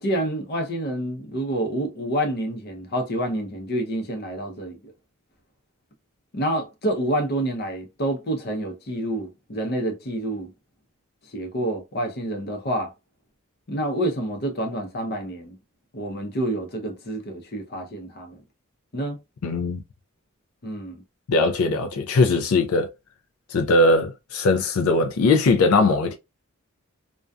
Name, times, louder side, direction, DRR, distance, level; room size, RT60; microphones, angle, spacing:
voice 1, 0.0-4.8 6.3-10.5 11.3-12.9 13.7-15.6 15.9-18.4 18.9-19.2 20.6-21.0, right 1 dB, 50° left, 0.6 m, -28 dB
voice 2, 19.4-19.8 21.3-22.9 23.5-26.2, left 3 dB, 90° left, 0.4 m, -20 dB
2.5 x 2.2 x 2.2 m
head